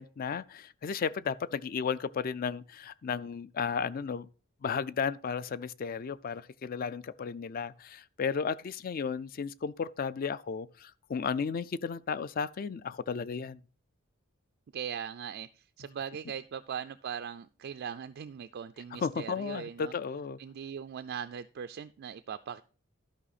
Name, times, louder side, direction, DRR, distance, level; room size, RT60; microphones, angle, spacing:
voice 1, 0.0-4.3 4.6-13.6 18.9-20.4, left 6 dB, 40° left, 0.4 m, -34 dB
voice 2, 14.7-19.9 20.4-22.6, right 8 dB, 50° right, 0.3 m, -40 dB
12.5 x 5.5 x 4.1 m
head